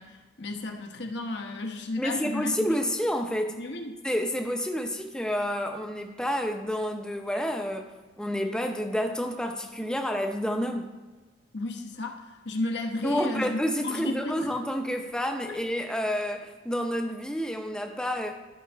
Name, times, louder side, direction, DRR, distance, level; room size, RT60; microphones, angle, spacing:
voice 1, 0.0-2.7 3.6-4.0 11.5-14.4 15.5-15.6, left 2 dB, 65° left, 2 dB, 1.1 m, -33 dB
voice 2, 2.0-3.6 4.0-10.9 13.0-18.3, equal, 5° left, 4 dB, 0.7 m, -29 dB
13.0 x 5.4 x 3.5 m, 1.3 s
head